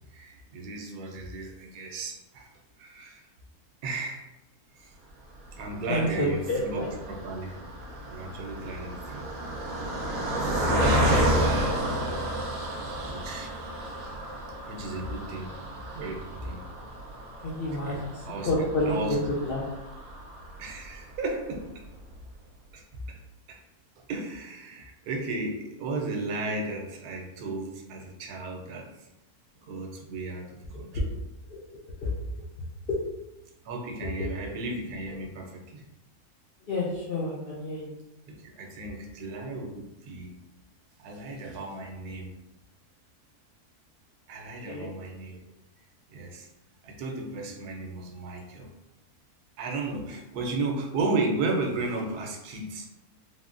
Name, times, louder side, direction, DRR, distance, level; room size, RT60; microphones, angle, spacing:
voice 1, 0.1-2.5 2.8-3.3 3.8-4.3 4.7-4.9 5.5-7.6 8.1-9.3 9.6-12.2 12.6-12.8 13.0-13.5 14.7-15.5 15.9-16.7 17.7-19.2 20.6-21.7 22.7-22.8 23.1-23.2 23.5-23.6 24.1-29.1 29.6-31.1 33.6-35.8 38.3-40.3 41.0-42.4 44.3-45.4 46.1-46.5 46.8-48.7 49.6-52.9, right 3 dB, 90° right, 1 dB, 1.1 m, -34 dB
Car passing by, 5.5-21.0 21.5-21.6 21.9-22.1, equal, 65° right, 1.0 m, -31 dB
voice 2, 5.9-6.9 17.4-19.0 19.4-19.6 31.5-31.6 32.0-32.1 36.7-37.9 44.7-44.9, left 1 dB, 70° left, -7 dB, 0.5 m, -29 dB
3.5 x 2.1 x 2.4 m, 0.95 s
omnidirectional pair, 1.6 m